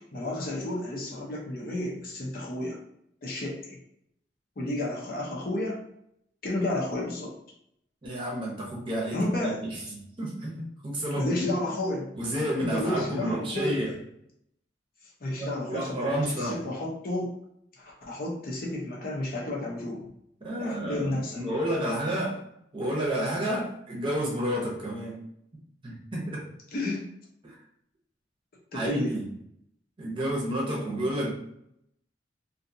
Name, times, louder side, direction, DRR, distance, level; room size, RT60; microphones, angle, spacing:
voice 1, 0.1-2.8 3.2-3.8 4.6-5.8 6.4-7.3 9.1-9.6 11.1-12.1 12.6-13.7 15.2-17.3 17.7-20.0 20.6-21.4 26.7-27.0 28.7-29.1, left 1 dB, 50° left, -2 dB, 0.7 m, -31 dB
voice 2, 8.0-9.8 10.2-11.4 12.1-13.9 15.4-16.6 20.4-22.4 22.7-25.2 25.8-26.5 27.4-27.6 28.7-29.2 30.0-31.3, right 1 dB, 30° right, -3 dB, 0.7 m, -30 dB
2.6 x 2.3 x 2.6 m, 0.74 s
head